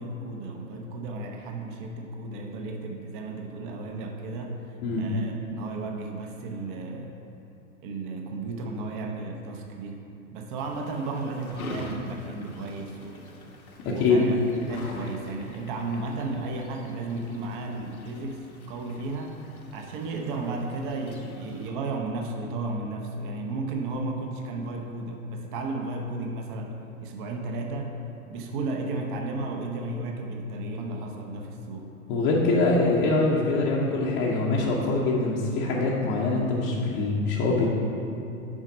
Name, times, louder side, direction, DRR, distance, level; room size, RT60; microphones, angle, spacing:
voice 1, 0.0-7.2 7.8-10.0 10.3-13.3 13.8-14.4 14.7-19.4 19.7-26.7 27.0-28.0 28.3-31.9, right 2 dB, 35° right, 2 dB, 0.8 m, -34 dB
sound 1, 10.6-21.7, left 2 dB, 80° left, 1.2 m, -44 dB
voice 2, 13.8-14.2 32.1-37.7, left 3 dB, 25° left, -4 dB, 0.8 m, -24 dB
7.3 x 4.9 x 5.3 m, 3.0 s
figure-of-eight pair, 100°, 43 cm